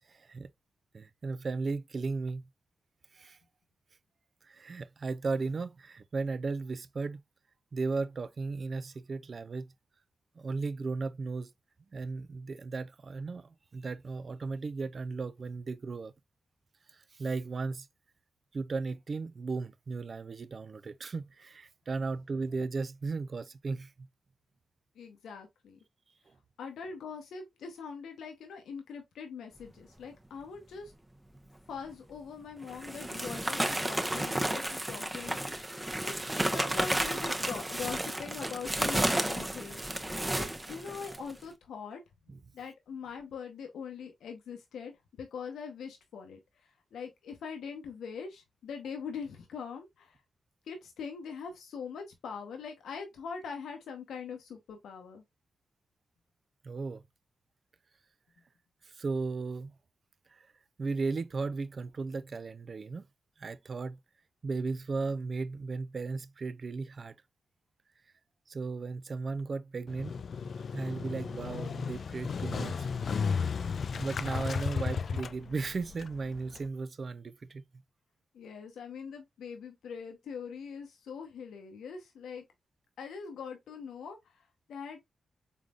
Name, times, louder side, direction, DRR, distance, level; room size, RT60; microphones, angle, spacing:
voice 1, 0.1-0.5 0.9-2.5 3.1-3.4 4.4-7.2 7.7-9.7 10.4-11.5 11.9-16.1 16.9-17.9 18.5-24.1 42.3-42.4 56.6-57.0 58.8-59.7 60.3-60.5 60.8-63.1 63.4-64.0 64.4-67.2 68.5-72.9 73.9-77.6, right 4 dB, 55° right, 0.4 m, -36 dB
voice 2, 24.9-25.8 26.6-30.9 31.7-35.7 36.0-36.1 36.5-42.0 42.5-50.2 50.6-55.2 78.3-82.4 83.0-85.1, left 6 dB, 85° left, 0.7 m, -42 dB
sound 1, 31.9-32.0 32.6-41.3, right 1 dB, 15° right, 0.7 m, -32 dB
Motorcycle, 69.9-76.7, left 5 dB, 65° left, 0.3 m, -34 dB
3.8 x 3.5 x 2.3 m
supercardioid pair, 45°, 0 cm